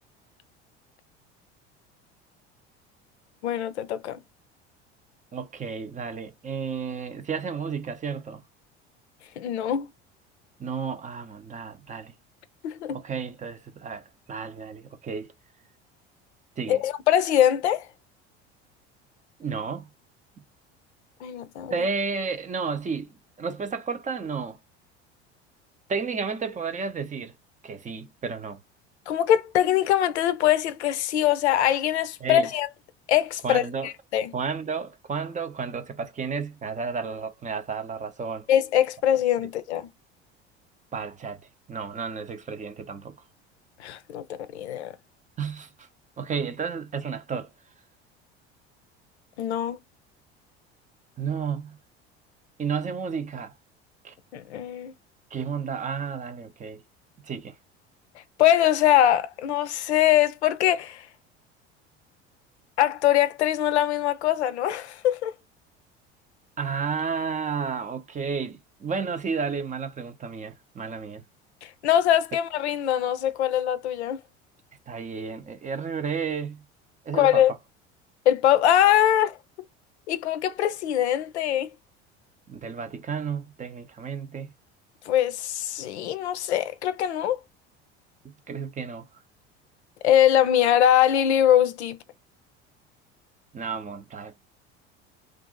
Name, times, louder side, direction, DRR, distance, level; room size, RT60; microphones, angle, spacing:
voice 1, 3.4-4.2 9.4-9.9 12.6-13.0 16.7-17.8 21.2-21.7 29.1-32.7 33.1-34.3 38.5-39.9 43.8-44.2 44.5-44.9 49.4-49.8 54.3-54.9 58.4-61.0 62.8-65.3 71.8-74.2 77.1-77.5 78.3-79.4 80.1-81.7 85.1-87.4 90.0-92.0, left 11 dB, 80° left, 0.5 m, -22 dB
voice 2, 5.3-8.4 10.6-12.1 12.9-15.3 16.6-16.8 19.4-19.9 21.7-24.6 25.9-27.3 27.6-28.6 32.2-32.5 33.4-33.9 34.3-38.5 40.9-41.4 41.7-43.2 45.4-45.9 46.2-47.5 51.2-51.8 52.6-53.5 54.0-54.1 55.3-56.8 57.2-57.6 66.6-71.2 74.9-76.6 77.0-77.4 82.5-84.5 88.2-89.2 93.5-94.5, right 5 dB, 25° right, 0.6 m, -32 dB
2.5 x 2.4 x 3.8 m
hypercardioid pair, 70°, 33 cm